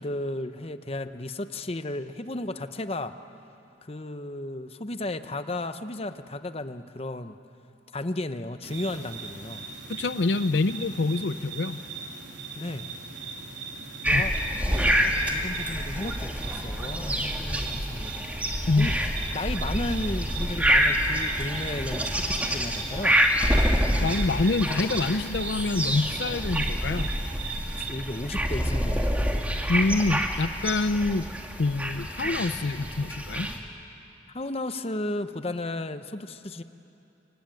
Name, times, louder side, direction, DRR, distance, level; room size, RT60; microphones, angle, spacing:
voice 1, 0.0-3.1 3.8-7.4 7.9-9.7 12.6-12.9 14.0-14.3 14.7-14.9 15.3-18.1 18.8-18.9 19.3-23.2 27.8-29.2 34.3-36.6, left 1 dB, 35° left, 10 dB, 0.9 m, -34 dB
sound 1, 8.6-27.9, right 4 dB, 90° right, 3.2 m, -39 dB
voice 2, 9.9-11.8 14.1-14.2 18.7-18.9 24.0-27.1 29.7-31.3 31.6-33.5, left 3 dB, 70° left, 13 dB, 0.6 m, -26 dB
sound 2, 14.0-33.6, equal, 10° right, 2.0 m, -27 dB
27.0 x 24.5 x 9.2 m, 2.8 s
head